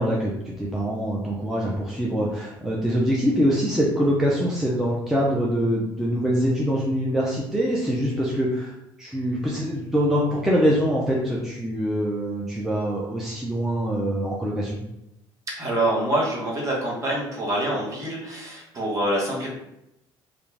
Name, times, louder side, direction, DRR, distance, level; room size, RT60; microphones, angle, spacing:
voice 1, 0.0-8.7 9.0-14.8, equal, 5° right, -5 dB, 0.5 m, -24 dB
voice 2, 15.6-19.5, right 1 dB, 35° right, -3 dB, 1.0 m, -26 dB
2.4 x 2.2 x 3.1 m, 0.86 s
cardioid pair, 105°, 10 cm